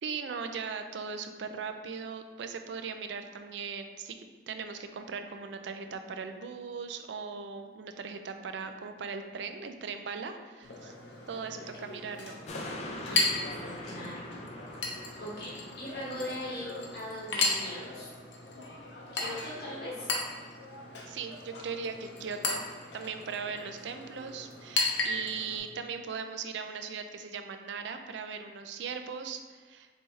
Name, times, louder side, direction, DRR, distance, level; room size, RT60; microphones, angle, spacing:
voice 1, 0.0-10.9 11.3-12.4 21.1-22.6 22.9-29.9, right 5 dB, 80° right, 7 dB, 0.4 m, -39 dB
Chink clink, 10.6-25.6, left 3 dB, 85° left, 0.7 m, -36 dB
sound 1, 12.5-19.1 19.5-19.6, left 1 dB, 35° left, 0.5 m, -44 dB
voice 2, 13.0-14.2 15.2-18.1 19.1-20.1, left 1 dB, 60° left, -6 dB, 1.0 m, -40 dB
5.5 x 2.9 x 3.2 m, 1.4 s
head